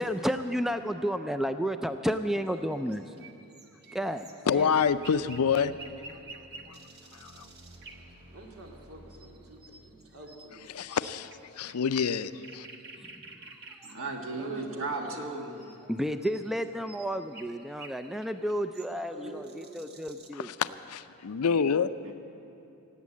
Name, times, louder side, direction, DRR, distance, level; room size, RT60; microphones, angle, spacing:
voice 1, 0.0-3.3 3.9-4.7 13.0-13.2 13.8-14.0 15.9-20.5, equal, ahead, 9 dB, 0.3 m, -32 dB
sound 1, 2.4-20.3, right 3 dB, 50° right, 1.2 m, -51 dB
voice 2, 3.8-5.3 8.3-10.7 14.3-15.2 18.8-19.8, right 2 dB, 80° right, 0 dB, 2.2 m, -48 dB
voice 3, 4.5-5.7 6.7-6.8 7.1-7.4 10.7-12.7 20.4-21.9, left 6 dB, 80° left, 13 dB, 0.5 m, -27 dB
sound 2, 4.8-11.4, equal, 25° right, 3.3 m, -55 dB
voice 4, 13.8-15.8 22.0-22.1, right 3 dB, 65° right, 2 dB, 1.7 m, -35 dB
17.5 x 8.2 x 8.4 m, 2.9 s
head